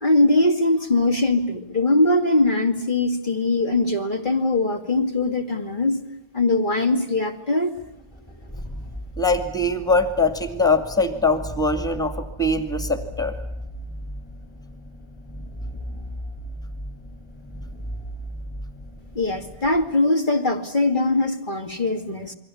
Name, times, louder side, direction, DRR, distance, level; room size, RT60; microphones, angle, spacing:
voice 1, 0.0-6.0 6.3-7.7 19.1-22.3, left 2 dB, 45° left, 3 dB, 2.7 m, -21 dB
sound 1, 7.7-19.9, equal, 25° left, 7.1 m, -36 dB
voice 2, 9.2-13.4, left 2 dB, 5° left, 8 dB, 2.3 m, -22 dB
29.0 x 23.0 x 8.6 m, 0.73 s
omnidirectional pair, 1.1 m